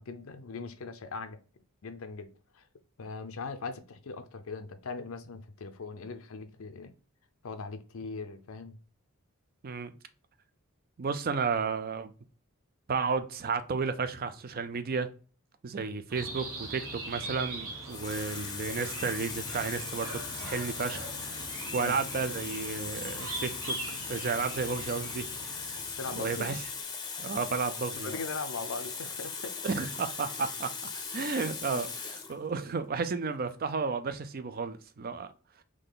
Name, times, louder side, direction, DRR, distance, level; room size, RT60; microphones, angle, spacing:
voice 1, 0.0-1.4 1.8-2.3 2.5-2.7 3.0-6.9 7.4-8.8 21.8-22.0 26.0-26.5 28.0-29.5, left 4 dB, 70° left, 0.6 m, -40 dB
voice 2, 11.0-12.1 12.9-15.1 15.6-25.8 26.2-26.6 27.2-28.2 29.6-35.3, right 5 dB, 40° right, 0.4 m, -33 dB
sound 1, 16.1-26.8, right 2 dB, 75° right, 1.3 m, -42 dB
Water tap faucet, 17.1-17.3 17.9-32.4 33.3-33.5, left 5 dB, 20° left, 0.6 m, -39 dB
3.8 x 3.2 x 3.8 m
head